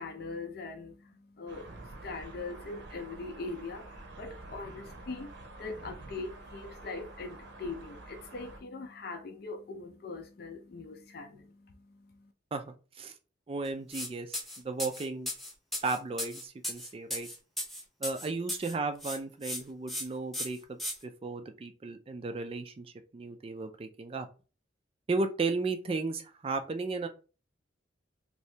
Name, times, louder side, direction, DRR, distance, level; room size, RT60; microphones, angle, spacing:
voice 1, 0.0-12.3, left 3 dB, 55° left, 0.4 m, -42 dB
sound 1, 1.5-8.6, right 2 dB, 65° right, 0.7 m, -48 dB
voice 2, 13.5-15.3 15.8-17.3 18.0-24.3 25.1-27.1, right 3 dB, 30° right, 0.3 m, -35 dB
sound 2, 13.9-14.1 14.3-18.7 19.0-19.6 19.9-20.0 20.3-20.9, left 1 dB, ahead, 0.7 m, -36 dB
2.7 x 2.6 x 3.2 m
head